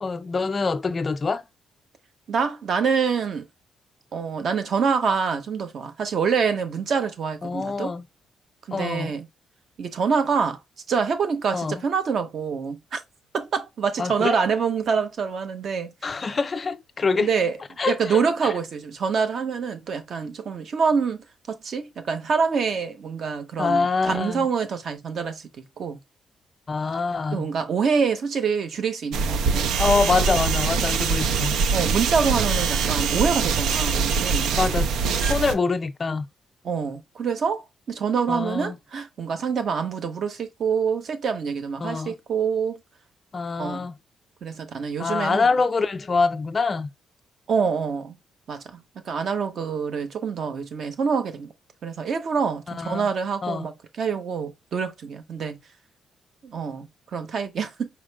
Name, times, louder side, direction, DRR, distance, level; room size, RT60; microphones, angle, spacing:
voice 1, 0.0-1.4 7.4-8.0 8.7-9.1 11.5-11.8 14.0-14.4 16.0-17.3 17.8-18.5 23.6-24.5 26.7-27.5 29.8-31.6 34.6-34.9 35.2-36.2 38.3-38.8 41.8-42.1 43.3-43.9 45.0-46.9 52.8-53.1 53.4-53.7, left 4 dB, 25° left, 0.3 m, -25 dB
voice 2, 2.3-3.5 4.1-7.9 8.7-9.3 9.8-10.6 10.9-13.0 13.3-16.1 17.2-17.6 17.9-26.0 27.3-29.7 31.7-34.5 36.6-42.8 43.6-43.8 44.4-45.5 47.5-48.2 48.5-48.8 49.0-51.5 51.8-55.6 56.4-57.9, right 6 dB, 45° right, 0.9 m, -26 dB
sound 1, 29.1-35.5, right 5 dB, 80° right, 0.6 m, -23 dB
4.9 x 4.3 x 2.3 m
cardioid pair, 175°, 0 cm